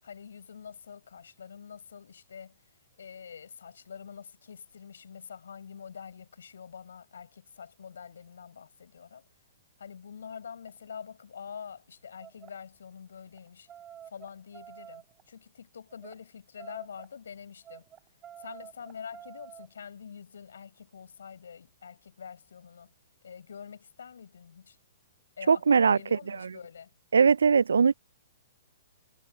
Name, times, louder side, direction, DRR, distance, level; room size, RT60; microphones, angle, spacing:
voice 1, 0.0-2.6 3.0-9.2 9.8-13.7 14.1-17.8 18.4-22.9 23.2-24.8 25.4-26.9, left 7 dB, 70° left, 7.9 m, -46 dB
sound 1, 10.5-10.8 11.4-11.6 12.2-12.6 13.2-15.3 15.9-16.2 16.6-17.1 17.6-19.7, right 10 dB, 20° right, 1.9 m, -49 dB
voice 2, 25.5-26.5 27.1-27.9, right 5 dB, 75° right, 0.4 m, -21 dB
figure-of-eight pair, 120°, 0 cm